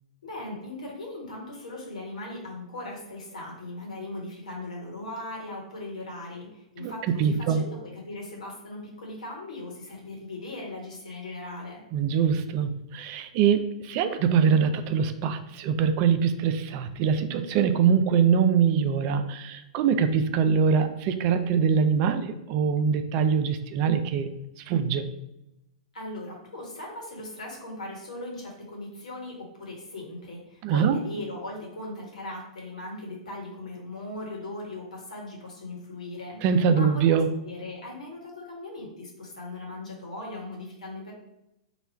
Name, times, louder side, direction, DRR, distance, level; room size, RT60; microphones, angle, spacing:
voice 1, 0.2-11.8 25.9-36.4 36.7-41.1, left 2 dB, 75° left, -2 dB, 1.2 m, -39 dB
voice 2, 7.2-7.6 11.9-24.3 24.6-25.0 30.6-31.0 36.4-37.3, right 7 dB, 40° right, 9 dB, 0.3 m, -23 dB
3.0 x 2.3 x 4.2 m, 0.88 s
figure-of-eight pair, 105°, 4 cm